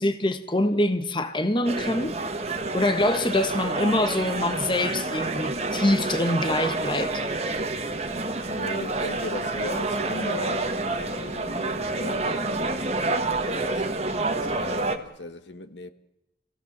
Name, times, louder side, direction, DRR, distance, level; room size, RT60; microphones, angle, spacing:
voice 1, 0.0-2.2 2.7-7.2, left 1 dB, 25° left, 1.3 m, -24 dB
sound 1, 1.6-15.0, right 2 dB, 35° right, 1.6 m, -28 dB
voice 2, 8.4-12.7 13.4-14.1 14.4-15.9, left 2 dB, 75° left, 1.5 m, -37 dB
28.5 x 17.0 x 7.4 m
head